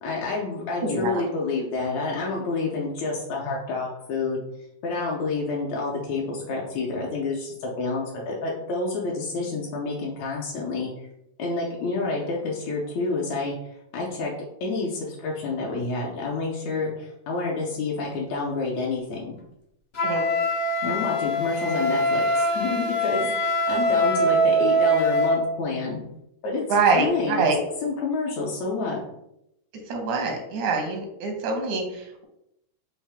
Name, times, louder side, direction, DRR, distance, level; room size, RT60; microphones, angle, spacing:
voice 1, 0.0-4.4 4.8-10.9 11.4-13.5 13.9-14.3 14.6-19.4 20.8-26.0 26.4-27.5 27.8-29.0, left 3 dB, 75° left, -3 dB, 1.9 m, -28 dB
voice 2, 0.8-1.2 20.0-20.3 26.7-27.6 29.9-32.3, right 4 dB, 85° right, 3 dB, 2.2 m, -25 dB
Wind instrument woodwind instrument, 19.9-25.4, equal, 45° left, 0.7 m, -23 dB
5.5 x 2.7 x 3.4 m, 0.80 s
omnidirectional pair, 3.4 m